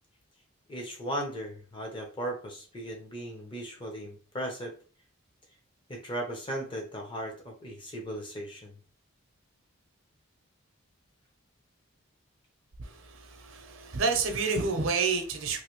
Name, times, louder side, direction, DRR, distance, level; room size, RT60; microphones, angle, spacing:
voice 1, 0.7-4.7 5.9-8.8, right 1 dB, 25° left, 0.7 m, -37 dB
voice 2, 12.8-15.6, right 4 dB, 65° right, 0.7 m, -29 dB
3.1 x 2.7 x 3.0 m
head